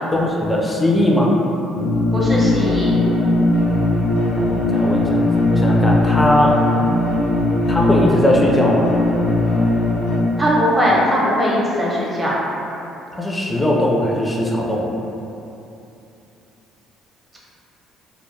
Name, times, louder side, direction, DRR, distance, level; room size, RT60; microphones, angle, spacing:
voice 1, 0.1-1.3 4.4-5.2 5.5-6.6 7.7-8.9 13.2-14.9, left 1 dB, 15° left, -2 dB, 0.4 m, -19 dB
sound 1, 1.7-10.2, left 2 dB, 80° left, 0.6 m, -18 dB
voice 2, 2.1-2.9 10.4-12.3, equal, 20° right, -6 dB, 0.8 m, -19 dB
2.2 x 2.1 x 3.2 m, 2.9 s
supercardioid pair, 75°, 0 cm